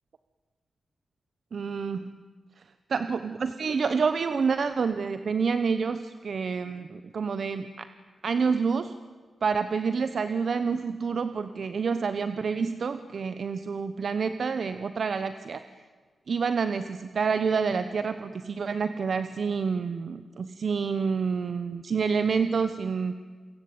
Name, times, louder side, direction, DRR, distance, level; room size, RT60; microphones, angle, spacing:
voice 1, 1.5-2.1 2.9-7.9 8.2-8.9 9.4-15.6 16.3-23.1, right 5 dB, 55° right, 11 dB, 1.0 m, -28 dB
29.0 x 23.0 x 8.7 m, 1.5 s
wide cardioid pair, 140°, 0 cm